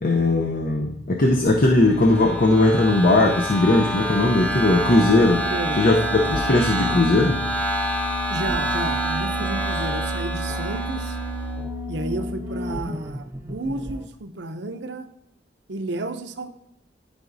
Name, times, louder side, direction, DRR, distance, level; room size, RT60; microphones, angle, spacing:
voice 1, 0.0-5.4 5.8-7.4, left 2 dB, 55° left, 1 dB, 0.7 m, -18 dB
sound 1, 1.3-14.1, right 1 dB, 15° right, 0.6 m, -32 dB
sound 2, 1.9-11.5, equal, 10° left, 0.9 m, -28 dB
voice 2, 5.3-5.9 8.3-11.2 11.9-15.1 15.7-16.5, right 2 dB, 85° right, 8 dB, 0.7 m, -31 dB
12.5 x 4.9 x 2.7 m, 0.84 s
head